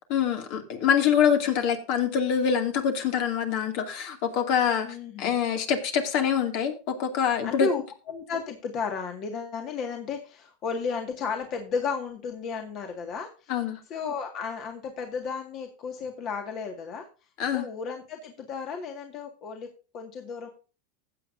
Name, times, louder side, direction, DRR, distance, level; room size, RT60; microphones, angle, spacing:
voice 1, 0.1-4.9 5.2-7.7 13.5-13.8 17.4-17.7, left 8 dB, 60° left, 2.4 m, -25 dB
voice 2, 4.8-5.3 7.4-7.8 8.1-13.5 13.9-17.1 17.5-19.7 19.9-20.5, left 5 dB, 40° left, 1.9 m, -33 dB
15.5 x 8.3 x 2.7 m
supercardioid pair, 125°, 0 cm